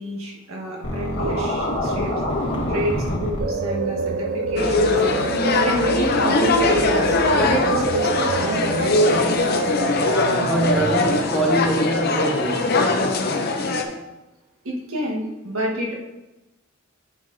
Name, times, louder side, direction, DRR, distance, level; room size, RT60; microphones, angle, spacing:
voice 1, 0.0-2.1 2.7-5.0 5.4-9.1 14.6-15.9, equal, 90° right, 1.5 m, -28 dB
Scratching (performance technique), 0.8-3.4, left 1 dB, 65° left, 1.4 m, -25 dB
sound 1, 3.4-11.2, right 3 dB, 50° right, 0.4 m, -26 dB
sound 2, 4.6-13.8, left 3 dB, 50° left, 0.6 m, -21 dB
voice 2, 10.4-13.0, right 1 dB, ahead, 0.8 m, -24 dB
9.3 x 5.7 x 2.7 m
head